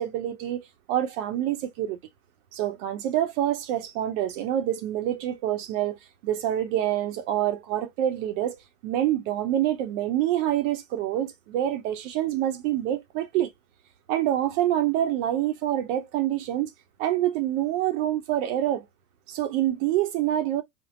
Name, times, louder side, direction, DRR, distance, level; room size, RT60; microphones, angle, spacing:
voice 1, 0.0-2.0 2.5-6.0 6.2-8.6 8.8-13.5 14.1-16.7 17.0-18.8 19.3-20.6, right 12 dB, 65° right, 0.7 m, -26 dB
3.5 x 2.0 x 3.6 m
hypercardioid pair, 95°, 41 cm